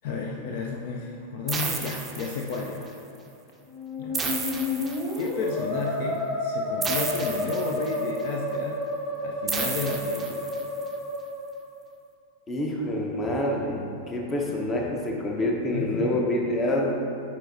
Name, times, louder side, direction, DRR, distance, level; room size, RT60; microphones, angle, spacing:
voice 1, 0.0-2.9 4.0-4.4 5.2-8.8 9.2-10.5 15.7-16.3, left 4 dB, 50° left, 0 dB, 0.4 m, -32 dB
sound 1, 1.5-2.8 4.1-5.5 6.8-8.2 9.5-10.8, right 4 dB, 15° right, 0.6 m, -32 dB
Musical instrument, 3.7-11.7, left 1 dB, ahead, 1.2 m, -31 dB
voice 2, 12.5-16.9, left 1 dB, 20° left, 0 dB, 0.8 m, -27 dB
9.0 x 4.2 x 2.6 m, 2.6 s
figure-of-eight pair, 90°, 0 cm